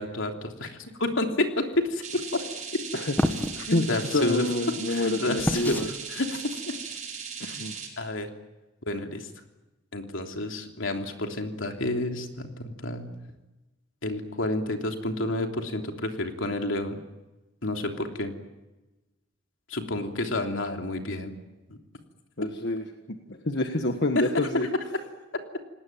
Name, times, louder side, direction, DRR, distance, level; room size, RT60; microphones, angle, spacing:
voice 1, 0.0-2.4 3.7-4.5 4.9-6.4 7.4-7.6 8.0-8.3 8.8-9.3 9.9-13.1 14.0-17.0 17.6-18.3 19.7-21.3, left 2 dB, 75° left, 4 dB, 3.2 m, -30 dB
sound 1, 2.0-7.9, right 6 dB, 40° right, 7.8 m, -38 dB
voice 2, 2.9-5.9 7.4-7.7 18.0-18.1 22.4-22.9 23.3-24.7, left 2 dB, 60° left, 5 dB, 1.6 m, -28 dB
sound 2, 3.2-3.6 5.4-5.9, equal, 10° left, 1.6 m, -26 dB
29.0 x 19.0 x 8.8 m, 1.1 s
head